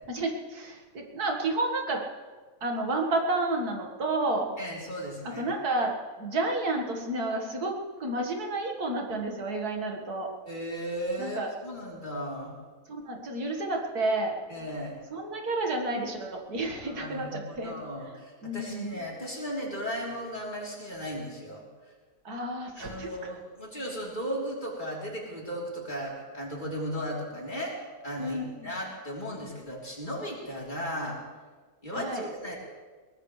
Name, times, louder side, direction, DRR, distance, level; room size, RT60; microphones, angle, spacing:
voice 1, 0.1-2.1 2.6-4.5 5.2-10.3 11.2-11.5 12.9-14.3 15.1-17.8 18.1-19.1 22.2-23.1 28.2-28.7 31.9-32.3, right 2 dB, 80° right, 1 dB, 2.3 m, -31 dB
voice 2, 4.6-5.5 10.5-12.6 14.5-15.0 16.8-21.6 22.8-31.2 31.8-32.6, equal, 30° left, -4 dB, 3.9 m, -36 dB
22.0 x 18.5 x 3.3 m, 1.4 s
omnidirectional pair, 1.6 m